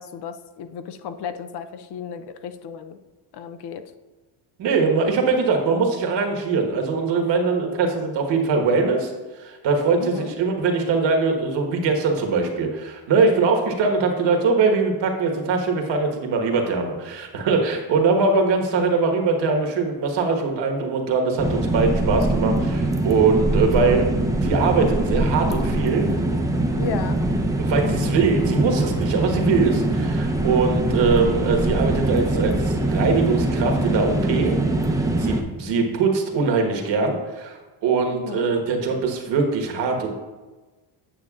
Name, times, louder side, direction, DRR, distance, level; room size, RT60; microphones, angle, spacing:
voice 1, 0.0-3.0 3.3-3.8 10.0-10.4 26.8-27.2 38.1-38.5, left 7 dB, 55° left, 9 dB, 0.6 m, -34 dB
voice 2, 4.6-9.1 9.4-24.1 24.4-26.1 27.7-34.6 35.2-40.1, right 4 dB, 65° right, 2 dB, 1.4 m, -22 dB
sound 1, 21.4-35.4, right 1 dB, 5° right, 0.6 m, -23 dB
8.9 x 6.3 x 2.4 m, 1.2 s
cardioid pair, 95°, 48 cm